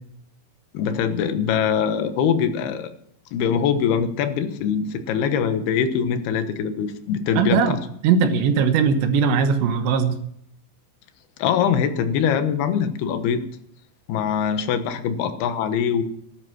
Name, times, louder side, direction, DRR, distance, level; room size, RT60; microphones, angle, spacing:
voice 1, 0.7-2.9 3.3-7.8 11.4-13.4 14.1-16.0, left 7 dB, 70° left, 9 dB, 2.9 m, -23 dB
voice 2, 7.4-7.8 8.0-10.2, right 6 dB, 75° right, 7 dB, 3.3 m, -19 dB
17.5 x 11.5 x 6.1 m, 0.70 s
omnidirectional pair, 5.5 m